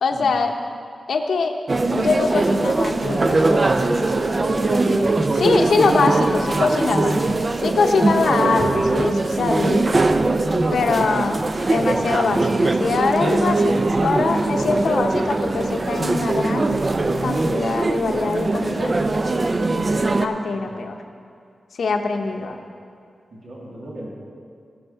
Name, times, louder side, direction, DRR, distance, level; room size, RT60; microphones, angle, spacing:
voice 1, 0.0-0.5 1.1-1.6 1.9-3.8 4.5-7.2 7.6-10.0 10.7-11.4 11.7-13.7 14.0-16.9 17.2-19.0 20.2-21.0 21.8-22.6, left 4 dB, 85° left, 4 dB, 0.9 m, -23 dB
sound 1, 1.7-20.3, right 2 dB, 35° right, 0.5 m, -21 dB
voice 2, 6.0-7.4 20.5-20.9 22.4-22.7 23.3-24.1, right 1 dB, 65° right, -5 dB, 2.9 m, -39 dB
16.5 x 5.7 x 5.7 m, 2.3 s
wide cardioid pair, 115°, 0 cm